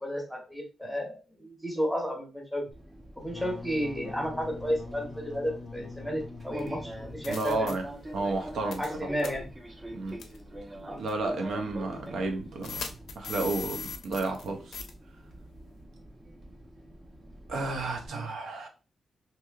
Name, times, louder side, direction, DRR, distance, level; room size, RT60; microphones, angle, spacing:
voice 1, 0.0-2.6 3.2-7.7 8.2-8.3 8.8-9.5 10.8-11.0 18.1-18.2, equal, ahead, 0.9 m, -33 dB
Fixed-wing aircraft airplane, 2.7-18.1, right 1 dB, 25° right, 0.6 m, -44 dB
Wind instrument woodwind instrument, 3.2-7.8, left 3 dB, 30° left, 0.4 m, -44 dB
sound 1, 6.6-6.7 7.2-7.7 8.7-8.9 9.2-9.3 10.2-10.4 11.1-11.2 12.6-14.5 14.7-14.9, left 5 dB, 85° left, 0.5 m, -38 dB
voice 2, 7.2-7.9 8.1-9.1 9.9-10.2 11.0-12.7 13.2-14.8 17.5-18.7, right 3 dB, 80° right, 0.6 m, -32 dB
2.9 x 2.6 x 2.3 m
wide cardioid pair, 115°, 0 cm